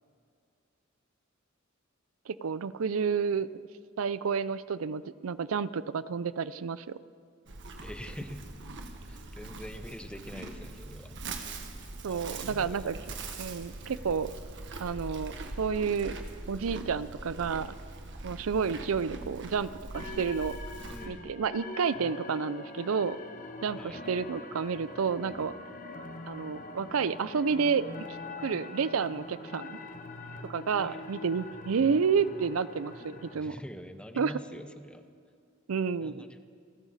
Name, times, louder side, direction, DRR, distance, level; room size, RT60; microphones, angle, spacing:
voice 1, 2.3-3.5 4.0-7.0 12.0-13.0 13.4-14.3 14.8-16.1 16.5-17.7 18.2-20.6 21.1-23.2 23.6-25.5 26.3-27.8 28.4-29.8 30.5-33.6 34.2-34.3 35.7-36.3, right 6 dB, 80° right, 16 dB, 0.5 m, -30 dB
Livestock farm animals working animals, 7.5-21.1, right 2 dB, 60° right, 1.4 m, -42 dB
voice 2, 7.8-8.5 9.1-11.2 12.1-13.1 20.9-21.3 23.8-24.1 30.8-31.0 33.3-35.1 36.0-36.4, equal, 5° left, 8 dB, 0.8 m, -45 dB
sound 1, 19.9-33.4, left 3 dB, 40° left, 1.1 m, -43 dB
29.0 x 12.0 x 4.1 m, 2.4 s
head